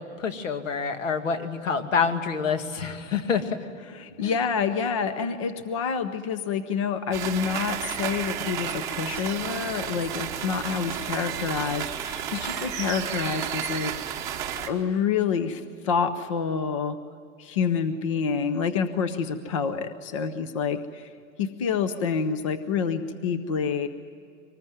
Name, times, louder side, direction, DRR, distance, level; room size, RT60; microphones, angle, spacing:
voice 1, 0.0-3.6 4.2-4.4, left 6 dB, 70° left, 8 dB, 2.4 m, -27 dB
voice 2, 3.9-13.9 14.6-17.0 17.4-21.1 21.4-23.9, left 6 dB, 25° left, 11 dB, 0.6 m, -28 dB
sound 1, 7.1-14.7, right 9 dB, 10° right, 1.0 m, -32 dB
24.5 x 20.0 x 9.5 m, 2.3 s
supercardioid pair, 180°, 40 cm